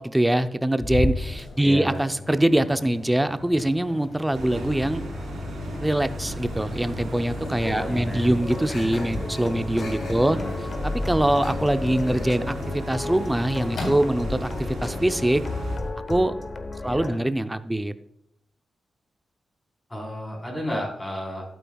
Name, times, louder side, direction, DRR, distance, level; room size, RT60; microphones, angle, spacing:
voice 1, 0.0-5.0 5.8-10.4 10.8-15.4 16.1-16.3 16.8-17.9, right 1 dB, 10° right, 10 dB, 0.5 m, -23 dB
Microwave oven, 0.8-15.9, left 2 dB, 70° left, 3.1 m, -36 dB
voice 2, 1.6-2.0 7.8-8.3 10.2-10.6 16.8-17.2 19.9-21.4, equal, 20° left, -1 dB, 3.9 m, -32 dB
sound 1, 4.3-15.8, equal, 70° right, 3.0 m, -34 dB
sound 2, 8.4-17.1, left 2 dB, 35° left, 1.0 m, -34 dB
12.0 x 9.2 x 2.3 m, 0.82 s
cardioid pair, 100°, 0 cm